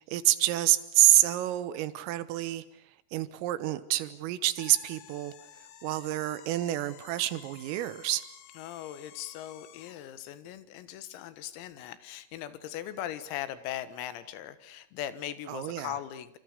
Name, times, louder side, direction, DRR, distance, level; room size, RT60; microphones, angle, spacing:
voice 1, 0.0-2.6 3.1-5.3 5.8-8.3 15.5-15.9, right 15 dB, 80° right, 3.8 m, -27 dB
sound 1, 4.6-10.1, left 11 dB, 75° left, 2.2 m, -53 dB
voice 2, 8.6-16.4, left 11 dB, 90° left, 4.2 m, -39 dB
28.5 x 26.5 x 6.7 m
omnidirectional pair, 6.0 m